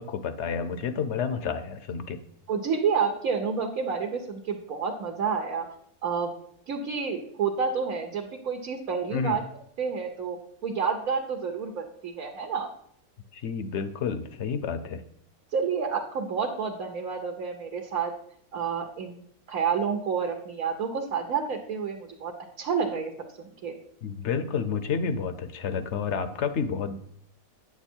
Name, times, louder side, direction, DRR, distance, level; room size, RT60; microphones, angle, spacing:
voice 1, 0.0-2.2 9.1-9.4 13.3-15.0 24.0-27.0, left 6 dB, 60° left, 11 dB, 0.8 m, -30 dB
voice 2, 2.5-5.6 6.0-6.3 6.7-9.4 9.8-10.4 10.6-12.7 15.5-18.1 18.5-19.2 19.5-22.3 22.6-23.1 23.4-23.7, right 6 dB, 65° right, 2 dB, 1.3 m, -29 dB
9.1 x 7.1 x 4.4 m, 0.67 s
omnidirectional pair, 1.6 m